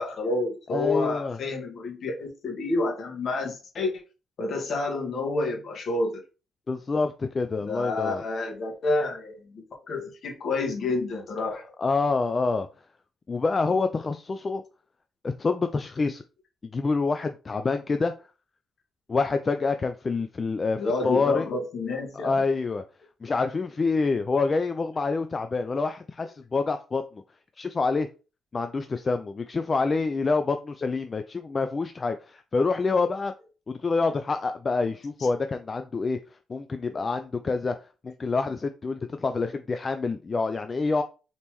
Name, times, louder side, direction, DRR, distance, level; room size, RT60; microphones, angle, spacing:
voice 1, 0.0-3.9 4.4-6.2 7.6-11.7 20.8-22.4, left 3 dB, 55° left, 0 dB, 1.6 m, -29 dB
voice 2, 0.7-1.4 6.7-8.2 11.8-12.7 13.3-14.6 15.2-16.2 16.7-18.1 19.1-21.5 22.2-22.8 23.2-27.0 27.6-28.1 28.5-33.3 33.7-36.2 36.5-37.7 38.0-41.0, left 4 dB, 35° left, 8 dB, 0.3 m, -27 dB
3.9 x 3.6 x 3.0 m, 0.33 s
cardioid pair, 90°, 0 cm